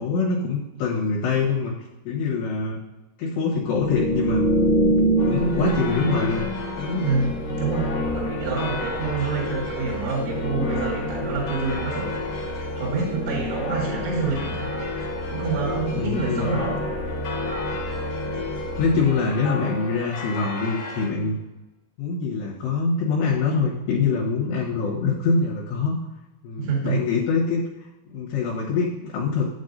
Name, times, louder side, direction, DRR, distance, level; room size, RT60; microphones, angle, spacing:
voice 1, 0.0-1.8 2.1-2.8 3.2-4.5 5.3-6.5 6.8-7.1 15.9-16.6 18.8-21.4 22.0-26.0 26.4-27.6 28.1-29.5, left 4 dB, 80° left, -4 dB, 3.4 m, -24 dB
sound 1, 3.8-19.5, equal, 45° left, 1.9 m, -27 dB
sound 2, 5.2-21.1, left 3 dB, 60° left, 1.7 m, -36 dB
voice 2, 7.0-14.7 15.3-16.8 26.6-27.0, right 4 dB, 75° right, -4 dB, 4.1 m, -27 dB
9.1 x 8.1 x 2.7 m, 1.0 s
omnidirectional pair, 5.0 m